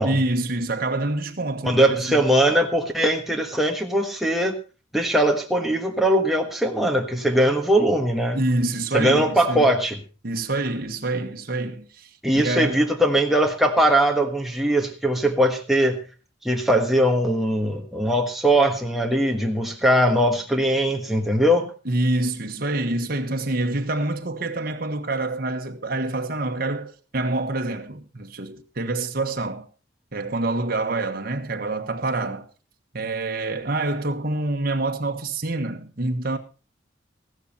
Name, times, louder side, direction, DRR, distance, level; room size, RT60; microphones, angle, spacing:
voice 1, 0.0-2.2 8.3-9.7 10.2-12.9 21.8-29.7 30.1-32.5 32.9-36.4, right 2 dB, 50° right, 1.4 m, -26 dB
voice 2, 1.6-4.6 4.9-8.4 8.9-10.0 12.2-16.0 16.4-21.7, right 1 dB, ahead, 1.4 m, -20 dB
15.0 x 12.5 x 4.2 m
head